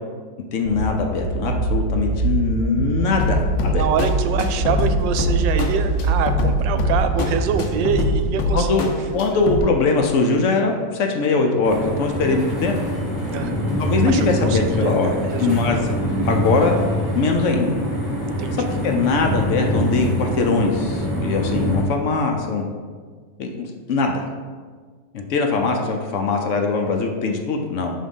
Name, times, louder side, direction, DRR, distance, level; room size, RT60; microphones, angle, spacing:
voice 1, 0.5-3.8 8.5-8.8 9.1-12.8 13.8-15.1 15.4-15.8 16.3-16.8 17.1-17.7 18.6-22.6 23.4-24.2 25.1-27.9, left 4 dB, 70° left, 3 dB, 0.7 m, -21 dB
sound 1, 0.7-8.3, right 2 dB, 60° right, 0.9 m, -24 dB
sound 2, 3.2-9.6, left 1 dB, 90° left, 1.5 m, -24 dB
voice 2, 3.7-8.9 13.3-13.6 14.1-15.8 18.4-18.5, right 7 dB, 80° right, 8 dB, 1.3 m, -25 dB
sound 3, 11.6-21.8, equal, 15° right, 1.0 m, -24 dB
6.4 x 3.7 x 5.3 m, 1.6 s
omnidirectional pair, 2.0 m